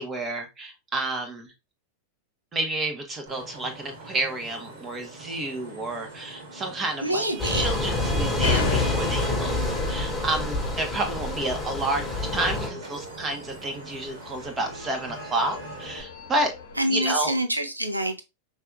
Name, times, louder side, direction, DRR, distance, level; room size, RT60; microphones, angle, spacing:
voice 1, 0.0-1.5 2.5-16.5 16.9-17.3, right 2 dB, 20° right, 1.1 m, -30 dB
Vehicle horn car horn honking / Traffic noise roadway noise, 3.3-16.0, right 2 dB, 50° right, 2.0 m, -41 dB
voice 2, 7.0-7.7 16.8-18.2, right 1 dB, 85° right, 0.7 m, -26 dB
sound 1, 7.4-12.7, left 2 dB, 5° left, 1.6 m, -27 dB
sound 2, 8.4-16.8, left 6 dB, 60° left, 0.8 m, -36 dB
5.7 x 3.6 x 2.4 m
figure-of-eight pair, 90°, 0 cm